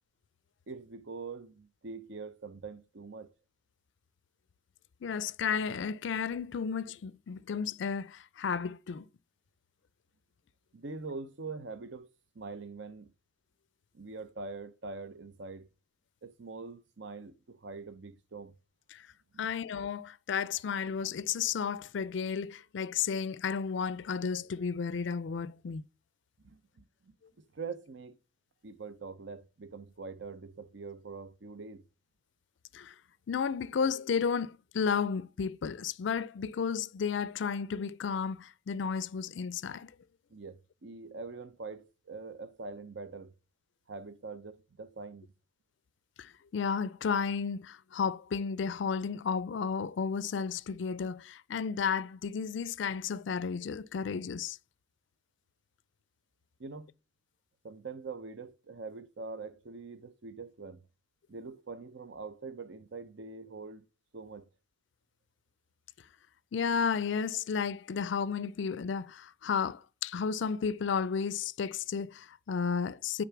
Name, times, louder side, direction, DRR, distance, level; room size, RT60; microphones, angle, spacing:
voice 1, 0.7-3.3 10.7-12.1 12.3-13.1 13.9-15.7 16.2-18.6 19.3-19.5 26.4-28.2 28.6-31.9 40.3-43.3 43.9-45.3 56.6-56.9 57.6-60.9 61.3-63.8 64.1-64.5, right 4 dB, 65° right, 0.7 m, -44 dB
voice 2, 5.0-9.1 18.9-19.1 19.4-25.8 32.7-32.9 33.3-39.9 46.2-54.6 66.5-73.2, left 6 dB, 65° left, 0.4 m, -33 dB
9.1 x 3.8 x 5.9 m
head